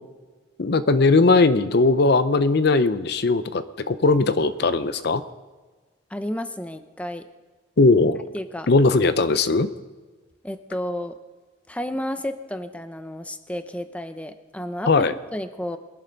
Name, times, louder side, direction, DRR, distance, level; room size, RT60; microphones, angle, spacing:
voice 1, 0.6-5.2 7.8-8.2 8.7-9.7 14.9-15.1, left 3 dB, 55° left, 13 dB, 0.6 m, -19 dB
voice 2, 6.1-7.2 8.3-8.7 10.4-11.2 11.7-15.8, left 1 dB, 5° left, 9 dB, 0.6 m, -32 dB
22.0 x 11.0 x 4.0 m, 1.4 s
head